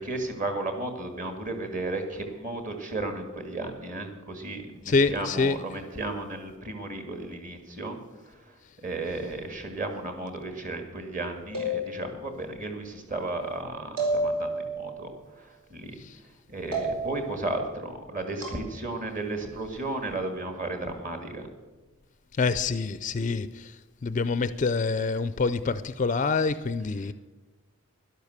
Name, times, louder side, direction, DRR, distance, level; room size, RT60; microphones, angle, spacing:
voice 1, 0.0-8.0 8.8-15.9 16.5-21.5, right 2 dB, 35° right, 5 dB, 1.9 m, -34 dB
voice 2, 4.9-5.6 16.0-16.1 22.4-23.7 24.0-27.1, left 4 dB, 35° left, 14 dB, 0.4 m, -26 dB
sound 1, 11.5-12.4 14.0-14.9 16.7-17.3 18.4-18.6, right 1 dB, 70° right, 4.5 m, -30 dB
12.0 x 11.5 x 6.6 m, 1.2 s
head